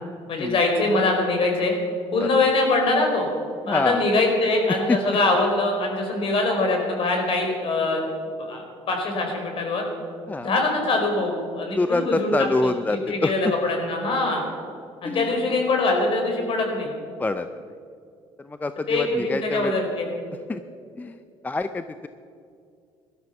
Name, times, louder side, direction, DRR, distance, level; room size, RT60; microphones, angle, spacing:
voice 1, 0.3-1.7 2.1-3.3 3.7-8.0 8.4-9.8 10.4-12.3 12.6-14.4 15.0-16.9 18.9-20.1, left 2 dB, 50° left, 2 dB, 4.6 m, -23 dB
voice 2, 3.7-4.0 4.7-5.2 10.3-10.5 11.8-13.3 15.0-15.4 17.2-17.5 18.4-19.7 20.5-20.6 21.0-21.2 21.4-22.1, left 2 dB, 15° left, 10 dB, 0.5 m, -26 dB
17.5 x 12.5 x 5.9 m, 2.4 s
cardioid pair, 115°, 12 cm